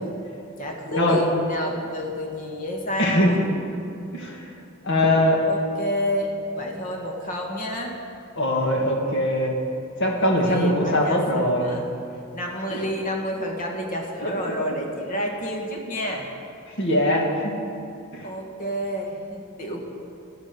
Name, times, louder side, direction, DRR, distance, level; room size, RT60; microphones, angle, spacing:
voice 1, 0.6-3.4 5.5-7.9 10.2-11.8 12.3-16.3 18.2-19.9, equal, 40° left, 0 dB, 1.8 m, -30 dB
voice 2, 3.0-3.5 4.1-4.4 4.8-5.4 8.4-9.6 10.0-11.8 12.7-12.8 14.2-14.3 16.8-17.5 18.1-18.2, left 1 dB, 60° left, 0 dB, 2.1 m, -21 dB
12.5 x 11.5 x 5.3 m, 2.7 s
head